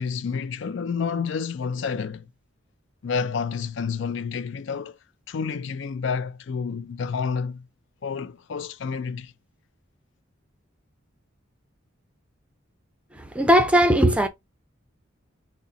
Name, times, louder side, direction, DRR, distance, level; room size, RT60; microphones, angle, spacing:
voice 1, 0.0-2.3 3.0-5.0 5.3-7.6 8.0-9.3, left 5 dB, 60° left, 0.4 m, -29 dB
voice 2, 13.1-14.3, equal, 5° right, 0.5 m, -18 dB
4.1 x 2.1 x 3.7 m
head